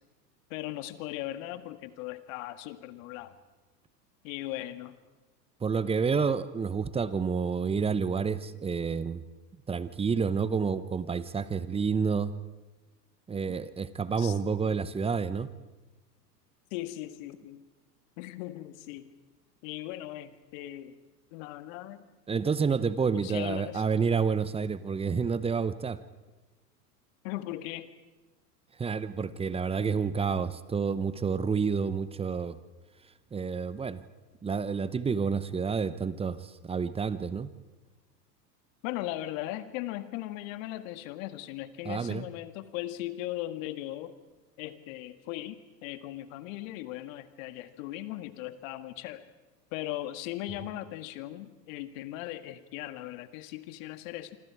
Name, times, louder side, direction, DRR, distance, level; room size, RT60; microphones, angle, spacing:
voice 1, 0.5-3.4 4.2-4.9 14.2-14.3 16.7-17.7 18.2-19.1 19.6-21.0 21.3-22.1 23.1-23.8 27.2-27.9 38.8-44.2 44.6-49.2 49.7-54.4, left 15 dB, 50° left, 11 dB, 1.8 m, -38 dB
voice 2, 5.6-9.2 9.7-12.3 13.3-15.5 22.3-26.0 28.8-32.6 33.3-34.0 34.4-37.5 41.8-42.3, right 5 dB, 10° right, 15 dB, 0.8 m, -29 dB
26.5 x 26.0 x 4.8 m, 1.2 s
hypercardioid pair, 100°, 50 cm